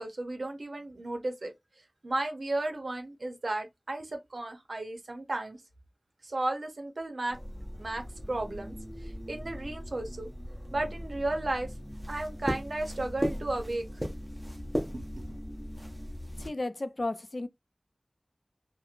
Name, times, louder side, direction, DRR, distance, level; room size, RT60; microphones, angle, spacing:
voice 1, 0.0-1.5 2.0-5.6 6.2-7.4 7.8-10.3 10.7-11.7 12.1-14.1 14.9-15.0, right 2 dB, 90° right, 0.7 m, -34 dB
sound 1, 7.3-16.5, equal, 10° right, 0.8 m, -38 dB
voice 2, 16.4-17.5, left 2 dB, 60° left, 0.3 m, -33 dB
3.0 x 2.0 x 2.4 m
wide cardioid pair, 50°, 0 cm